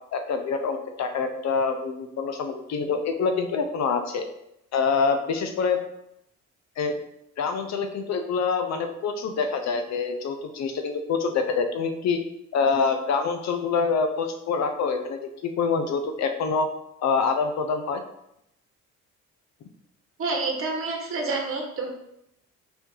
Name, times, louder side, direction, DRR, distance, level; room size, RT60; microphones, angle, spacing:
voice 1, 0.1-4.3 4.7-5.8 6.8-6.9 7.4-12.2 12.5-16.7 17.0-18.0, left 5 dB, 60° left, 7 dB, 0.7 m, -26 dB
voice 2, 20.2-21.9, right 3 dB, 45° right, 1 dB, 1.1 m, -28 dB
4.4 x 2.8 x 3.7 m, 0.80 s
cardioid pair, 90°, 30 cm